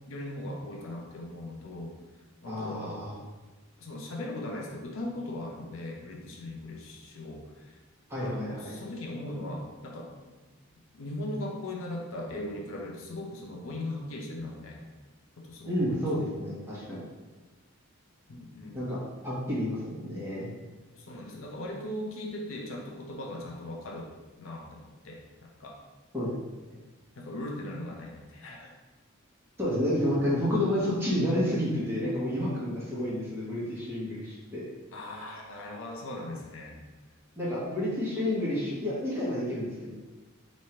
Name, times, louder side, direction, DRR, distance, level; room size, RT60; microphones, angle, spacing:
voice 1, 0.1-1.9 2.4-3.0 3.8-7.8 8.2-10.4 10.9-14.8 15.4-16.0 18.3-18.8 20.9-24.1 24.4-25.8 27.2-28.7 34.9-36.8, left 1 dB, 75° left, 0 dB, 0.6 m, -39 dB
voice 2, 2.4-3.1 8.1-8.7 15.6-17.0 18.7-19.0 19.2-20.5 26.1-26.3 29.6-34.6 37.4-39.9, left 1 dB, 10° right, -8 dB, 1.1 m, -30 dB
3.2 x 2.7 x 4.3 m, 1.2 s
head